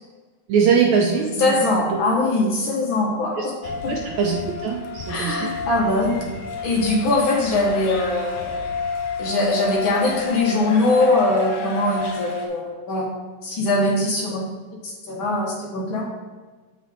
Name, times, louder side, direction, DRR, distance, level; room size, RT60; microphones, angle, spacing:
voice 1, 0.5-1.5 1.9-2.0 3.4-3.5 3.9-5.5, right 6 dB, 80° right, 1 dB, 1.7 m, -21 dB
voice 2, 1.4-3.5 3.8-3.9 5.1-6.2 6.6-8.5 9.2-13.1 13.4-14.4 14.8-16.0, left 2 dB, 65° left, -2 dB, 1.3 m, -21 dB
sound 1, 3.6-12.5, left 4 dB, 80° left, 2.8 m, -30 dB
7.2 x 6.2 x 4.2 m, 1.3 s
omnidirectional pair, 3.8 m